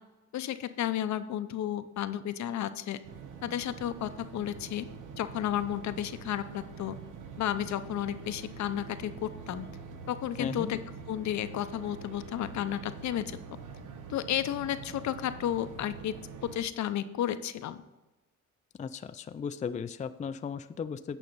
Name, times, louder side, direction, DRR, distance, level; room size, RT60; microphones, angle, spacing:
voice 1, 0.3-3.0 3.4-4.9 5.2-6.9 7.4-9.7 10.1-10.8 11.1-13.4 14.1-16.1 16.4-17.8, left 11 dB, 65° left, 11 dB, 0.7 m, -32 dB
sound 1, 3.0-16.6, right 5 dB, 85° right, 1.0 m, -45 dB
voice 2, 10.4-10.7 18.8-21.2, left 6 dB, 25° left, 11 dB, 0.4 m, -36 dB
9.3 x 5.5 x 5.4 m, 1.1 s
cardioid pair, 90°, 30 cm